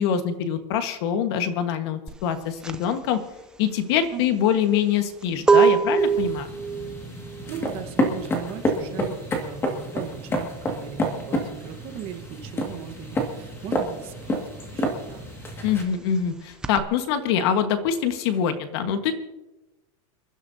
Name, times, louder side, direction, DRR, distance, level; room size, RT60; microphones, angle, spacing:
voice 1, 0.0-3.2 3.6-6.5 15.6-19.2, left 8 dB, 45° left, 8 dB, 1.4 m, -24 dB
sound 1, 2.1-12.3 12.6-16.8, right 6 dB, 5° right, 0.4 m, -25 dB
voice 2, 4.1-4.4 7.5-14.4 14.7-15.3, right 10 dB, 30° right, 6 dB, 1.3 m, -38 dB
sound 2, 6.0-15.8, equal, 15° left, 1.9 m, -29 dB
28.0 x 12.0 x 2.7 m, 1.0 s
supercardioid pair, 170°, 18 cm